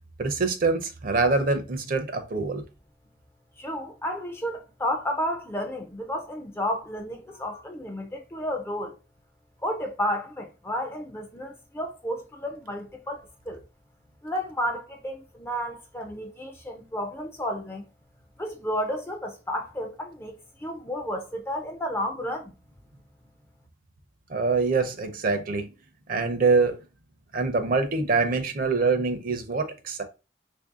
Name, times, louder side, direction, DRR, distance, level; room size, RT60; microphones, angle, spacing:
voice 1, 0.2-2.6 24.3-25.7 26.1-26.7 27.3-30.0, right 4 dB, 45° right, 0.5 m, -24 dB
voice 2, 3.6-9.0 9.6-13.6 14.2-17.8 18.4-22.6, equal, 10° left, 0.4 m, -32 dB
3.2 x 2.6 x 3.5 m
head